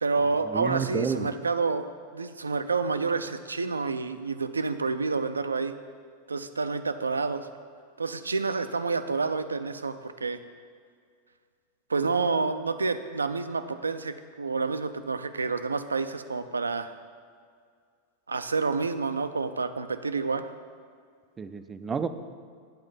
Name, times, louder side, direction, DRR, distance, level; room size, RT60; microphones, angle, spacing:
voice 1, 0.0-5.7 6.3-7.5 8.0-10.4 11.9-16.9 18.3-20.5, right 4 dB, 75° right, 10 dB, 0.4 m, -29 dB
voice 2, 0.5-1.3 21.4-22.1, right 6 dB, 20° right, 10 dB, 0.5 m, -30 dB
7.8 x 5.1 x 7.2 m, 2.1 s
figure-of-eight pair, 90°, 0 cm